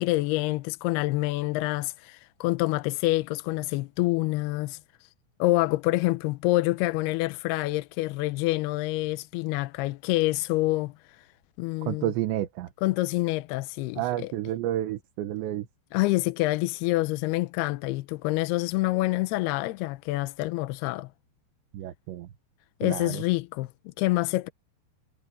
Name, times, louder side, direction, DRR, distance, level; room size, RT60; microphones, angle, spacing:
voice 1, 0.0-4.8 5.4-11.2 11.6-12.1 12.8-14.3 15.9-21.1 22.8-24.5, left 19 dB, 80° left, 2.4 m, -27 dB
voice 2, 11.9-12.7 14.0-15.7 21.7-22.3 22.8-23.2, right 13 dB, 80° right, 3.5 m, -30 dB
omnidirectional pair, 5.1 m